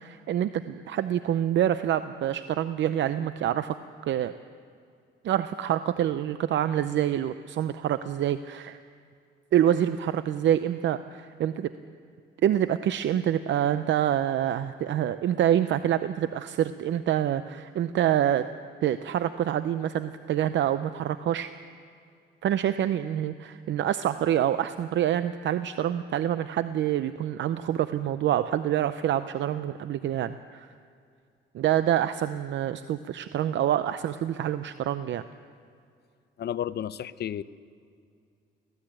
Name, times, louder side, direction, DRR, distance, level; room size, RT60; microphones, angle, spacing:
voice 1, 0.0-3.8 4.0-4.3 5.2-8.8 9.5-11.7 12.4-18.5 18.8-21.5 22.4-30.7 31.5-35.2, right 11 dB, 70° right, 12 dB, 0.6 m, -26 dB
voice 2, 36.4-37.4, left 10 dB, 55° left, 15 dB, 0.7 m, -32 dB
19.0 x 15.5 x 8.9 m, 2.3 s
cardioid pair, 90°, 20 cm